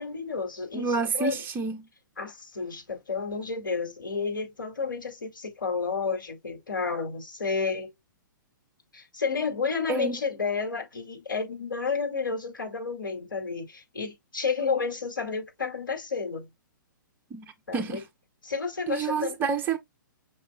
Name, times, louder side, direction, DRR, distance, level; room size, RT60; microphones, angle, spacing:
voice 1, 0.0-1.4 2.2-7.9 8.9-16.5 17.7-18.0 18.4-19.4, left 5 dB, 70° left, 2.3 m, -31 dB
voice 2, 0.7-1.8 9.9-10.2 17.3-18.0 18.9-19.8, right 5 dB, 20° right, 0.9 m, -29 dB
5.7 x 4.2 x 2.2 m
figure-of-eight pair, 120°, 11 cm